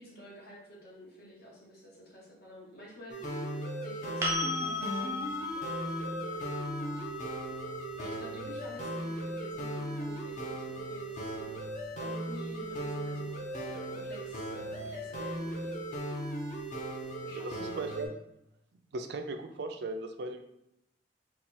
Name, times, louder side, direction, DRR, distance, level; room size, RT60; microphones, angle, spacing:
voice 1, 0.0-3.2 3.8-6.4 6.8-7.1 7.9-11.7 12.0-15.8 17.2-17.9, equal, 60° left, -4 dB, 1.4 m, -50 dB
sound 1, 3.1-18.1, right 1 dB, 45° left, 0.7 m, -37 dB
sound 2, 4.2-12.0 14.8-14.9, left 2 dB, 15° right, 0.6 m, -38 dB
voice 2, 17.4-18.1 18.9-20.4, right 2 dB, 65° right, 6 dB, 0.4 m, -37 dB
4.2 x 2.3 x 4.2 m, 0.82 s
head